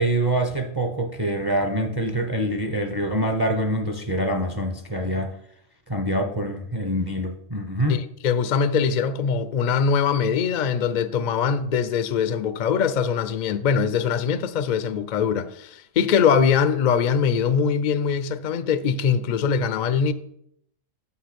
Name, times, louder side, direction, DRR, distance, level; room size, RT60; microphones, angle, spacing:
voice 1, 0.0-5.3 5.9-8.0, right 1 dB, 25° right, 0.5 m, -25 dB
voice 2, 7.9-20.1, left 6 dB, 70° left, 0.4 m, -22 dB
6.1 x 5.6 x 5.9 m
omnidirectional pair, 1.4 m